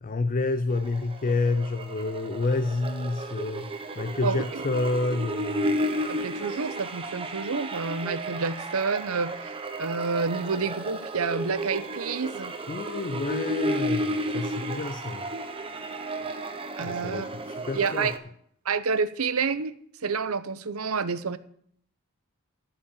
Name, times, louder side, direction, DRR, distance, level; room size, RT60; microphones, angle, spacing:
voice 1, 0.0-3.7 4.0-5.7 12.7-15.3 16.8-18.1, left 3 dB, 40° left, 12 dB, 0.5 m, -29 dB
sound 1, 0.7-18.2, right 1 dB, 25° right, 1.1 m, -33 dB
voice 2, 4.2-4.6 6.1-12.5 16.8-17.3 17.7-18.2 18.7-19.7 20.0-21.4, right 5 dB, 80° right, 14 dB, 0.8 m, -29 dB
14.0 x 5.2 x 8.4 m, 0.64 s
head